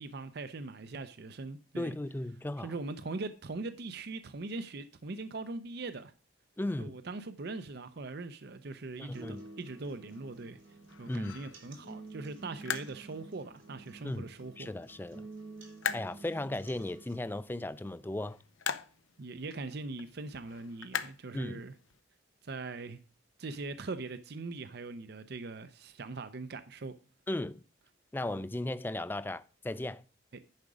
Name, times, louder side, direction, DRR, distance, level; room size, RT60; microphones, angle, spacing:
voice 1, 0.0-2.0 2.6-6.1 6.8-10.6 11.0-14.7 19.2-21.7 22.4-23.0 23.4-26.9, right 3 dB, 55° right, 0.6 m, -41 dB
voice 2, 1.8-2.7 6.6-7.0 9.0-9.4 11.1-11.4 14.0-14.3 14.6-15.3 15.9-18.4 21.3-21.6 27.3-27.6 28.1-30.0, left 1 dB, 10° left, 0.3 m, -36 dB
sound 1, 8.8-22.0, left 7 dB, 85° left, 0.7 m, -44 dB
sound 2, 9.1-17.1, right 3 dB, 85° right, 3.0 m, -50 dB
10.5 x 5.0 x 4.8 m
head